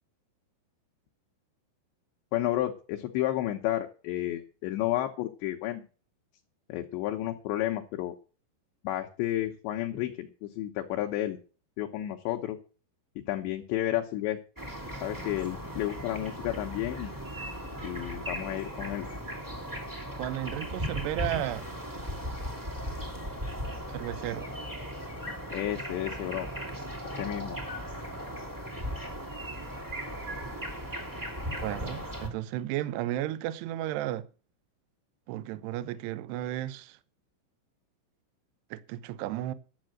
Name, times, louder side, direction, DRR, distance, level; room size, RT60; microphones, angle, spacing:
voice 1, 2.3-5.8 6.7-8.1 8.8-11.4 11.8-12.6 13.2-14.4 15.0-17.1 17.8-19.1 25.5-26.5 27.2-27.6, left 14 dB, 75° left, 2.8 m, -31 dB
sound 1, 14.6-32.3, equal, 30° right, 0.4 m, -37 dB
voice 2, 20.2-21.7 23.9-24.5 31.6-34.3 35.3-37.0 38.7-39.5, right 14 dB, 80° right, 2.4 m, -33 dB
11.5 x 7.6 x 7.6 m
omnidirectional pair, 5.9 m